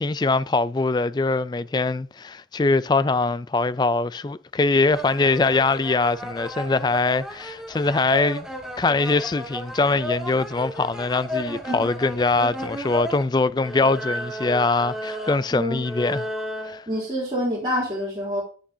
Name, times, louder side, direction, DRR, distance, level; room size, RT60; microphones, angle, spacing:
voice 1, 0.0-8.5 8.8-16.2 16.6-16.8, left 3 dB, 25° left, 0.3 m, -22 dB
sound 1, 4.9-13.2 13.6-16.8, equal, 5° right, 1.6 m, -33 dB
voice 2, 15.5-15.8 16.9-18.4, equal, 25° right, 3.3 m, -27 dB
9.9 x 8.4 x 2.7 m
head